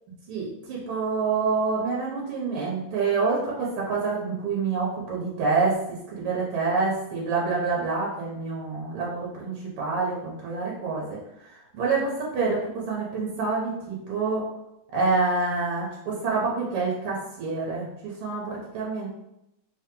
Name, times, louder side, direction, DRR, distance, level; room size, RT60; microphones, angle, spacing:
voice 1, 0.3-11.2 11.5-14.5 14.9-19.1, right 4 dB, 90° right, -3 dB, 1.8 m, -27 dB
4.0 x 2.8 x 3.7 m, 0.85 s
omnidirectional pair, 2.4 m